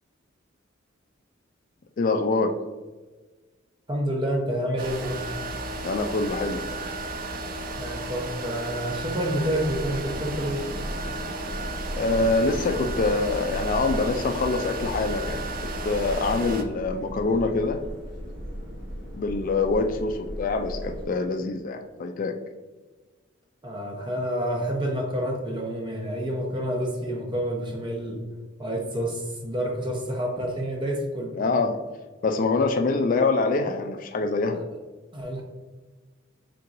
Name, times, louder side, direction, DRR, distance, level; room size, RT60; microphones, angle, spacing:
voice 1, 2.0-2.5 5.8-6.6 11.9-17.8 19.1-22.3 31.4-31.8 32.2-34.6, left 3 dB, 45° left, 5 dB, 0.3 m, -25 dB
voice 2, 3.9-5.3 7.8-10.7 23.6-28.2 28.6-31.4 34.5-34.6 35.1-35.4, equal, 25° right, 1 dB, 0.8 m, -28 dB
sound 1, 4.8-16.6, right 2 dB, 45° right, 0.4 m, -34 dB
sound 2, 9.7-21.1, equal, 65° right, 1.3 m, -37 dB
4.4 x 3.7 x 2.6 m, 1.3 s
head